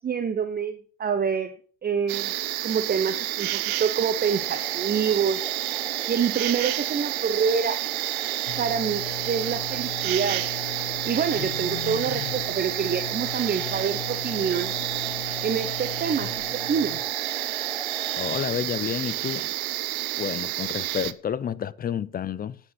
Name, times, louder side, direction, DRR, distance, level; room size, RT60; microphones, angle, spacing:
voice 1, 0.0-1.5 1.8-2.3 2.6-5.5 6.1-7.8 8.6-10.5 11.0-14.7 15.4-17.0, right 6 dB, 20° right, 1.1 m, -27 dB
sound 1, 2.1-21.1, right 16 dB, 80° right, 0.9 m, -30 dB
sound 2, 4.3-18.4, equal, ahead, 1.1 m, -42 dB
sound 3, 8.5-17.0, left 14 dB, 65° left, 1.5 m, -38 dB
voice 2, 18.1-19.5 20.2-22.6, left 9 dB, 20° left, 0.6 m, -30 dB
9.3 x 9.1 x 5.8 m
hypercardioid pair, 100°, 42 cm